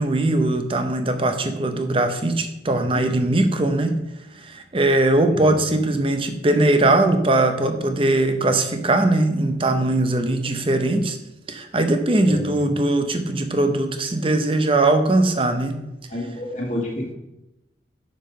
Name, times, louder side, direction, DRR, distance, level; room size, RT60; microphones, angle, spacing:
voice 1, 0.0-4.0 4.4-11.2 11.5-15.8, right 2 dB, 30° right, 7 dB, 0.7 m, -20 dB
voice 2, 12.3-12.6 16.1-17.1, left 1 dB, 40° left, -2 dB, 1.9 m, -29 dB
5.9 x 5.3 x 5.6 m, 0.92 s
head